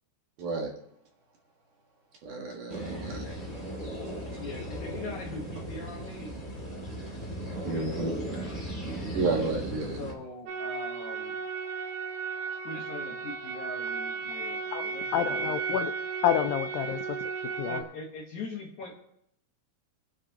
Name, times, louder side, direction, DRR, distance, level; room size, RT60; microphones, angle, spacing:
voice 1, 0.4-0.7 2.2-3.5 3.8-4.1 7.6-8.1 9.1-10.0, right 3 dB, 60° right, 2.7 m, -32 dB
sound 1, 2.7-10.1, right 1 dB, 20° left, 1.6 m, -37 dB
voice 2, 4.4-6.4 7.5-8.5 10.0-11.4 12.6-15.8 17.7-18.9, left 3 dB, 60° left, 2.3 m, -42 dB
sound 2, 10.5-17.8, right 5 dB, 75° right, 3.0 m, -34 dB
voice 3, 15.1-15.9 16.2-17.2 17.6-17.8, left 11 dB, 85° left, 2.0 m, -28 dB
25.0 x 9.8 x 2.9 m
omnidirectional pair, 4.7 m